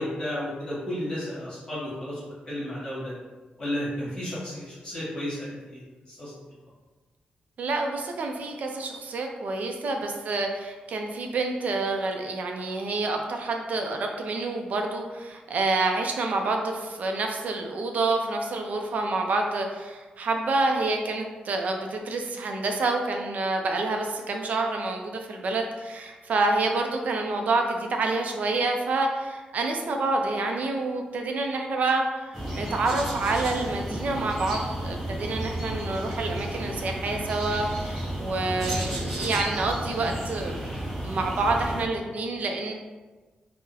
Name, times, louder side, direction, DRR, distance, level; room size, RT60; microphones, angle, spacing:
voice 1, 0.0-3.1 3.6-6.3, left 1 dB, 30° left, -9 dB, 1.5 m, -33 dB
voice 2, 7.6-40.7 41.0-42.7, right 3 dB, 55° right, 3 dB, 0.4 m, -28 dB
sound 1, 32.3-41.8, right 1 dB, ahead, 0.8 m, -32 dB
3.7 x 2.0 x 2.7 m, 1.3 s
wide cardioid pair, 160°, 3 cm